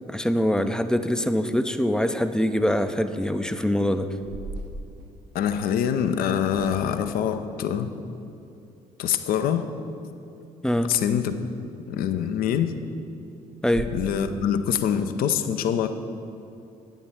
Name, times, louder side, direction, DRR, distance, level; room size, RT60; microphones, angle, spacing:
voice 1, 0.1-4.1 10.6-10.9 13.6-13.9, left 1 dB, 5° left, 10 dB, 0.4 m, -24 dB
sound 1, 4.1-5.8 6.5-7.2 11.7-11.9 12.3-12.4 12.8-12.9 13.3-13.4 13.7-14.0, right 3 dB, 65° right, 0.7 m, -39 dB
voice 2, 5.3-7.9 9.0-9.7 10.9-11.4 11.9-12.7 13.9-15.9, left 9 dB, 50° left, 9 dB, 0.6 m, -24 dB
9.3 x 7.2 x 4.6 m, 2.6 s
figure-of-eight pair, 45°, 19 cm